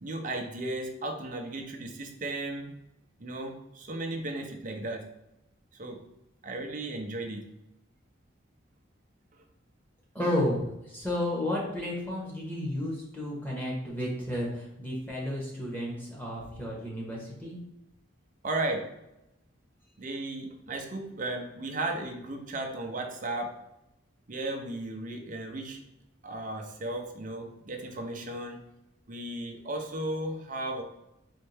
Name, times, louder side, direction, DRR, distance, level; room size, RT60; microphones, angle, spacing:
voice 1, 0.0-2.7 3.2-5.1 5.7-6.0 6.4-7.5 18.4-18.9 20.0-23.5 24.3-25.8 26.2-28.6 29.1-30.8, right 2 dB, 40° right, 3 dB, 0.6 m, -35 dB
voice 2, 10.1-17.6, left 1 dB, 10° left, -4 dB, 1.2 m, -32 dB
4.3 x 3.3 x 3.4 m, 0.87 s
head